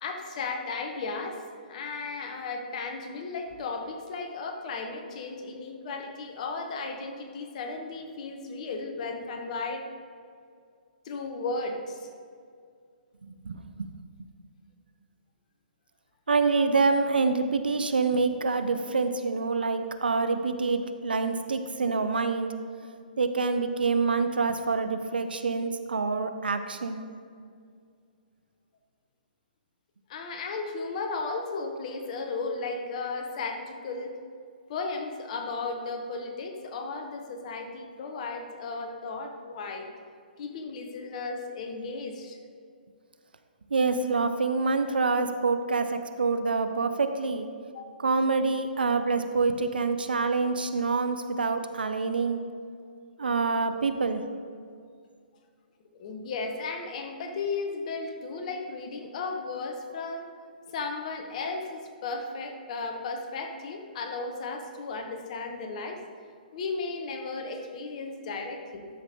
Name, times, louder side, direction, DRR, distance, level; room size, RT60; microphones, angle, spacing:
voice 1, 0.0-1.4 1.7-9.9 11.0-12.1 30.1-34.1 34.7-39.9 40.4-42.4 47.7-47.9 56.0-60.3 60.7-66.0 66.5-68.9, left 3 dB, 45° left, 4 dB, 1.2 m, -35 dB
voice 2, 13.2-13.9 16.3-22.6 23.2-27.0 43.7-47.5 48.0-52.4 53.2-54.2, right 4 dB, 75° right, 9 dB, 0.7 m, -26 dB
12.5 x 5.8 x 3.7 m, 2.2 s
figure-of-eight pair, 125°, 5 cm